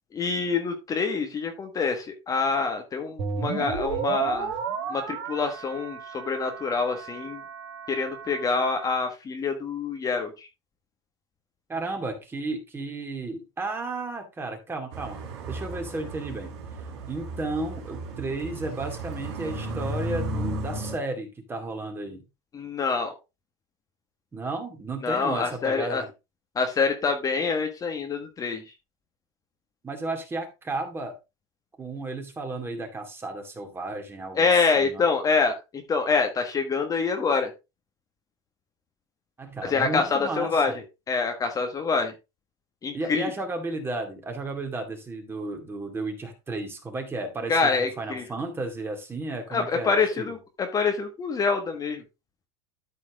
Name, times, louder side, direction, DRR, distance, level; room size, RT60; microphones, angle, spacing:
voice 1, 0.1-4.6 4.9-7.4 7.9-10.5 22.5-23.1 25.0-26.0 26.5-28.7 34.3-37.5 39.6-40.8 41.1-42.1 42.8-43.3 47.5-48.2 49.5-52.0, left 4 dB, 25° left, 5 dB, 1.5 m, -26 dB
sound 1, 3.2-8.9, right 6 dB, 60° right, 3.5 m, -33 dB
voice 2, 11.7-16.5 17.1-22.2 24.3-26.1 29.8-31.1 31.8-35.0 39.4-40.8 42.9-50.3, right 2 dB, 15° right, 4 dB, 2.5 m, -33 dB
sound 2, 14.9-21.0, right 2 dB, 85° right, 3.4 m, -34 dB
13.0 x 4.5 x 3.7 m, 0.26 s
supercardioid pair, 125°, 14 cm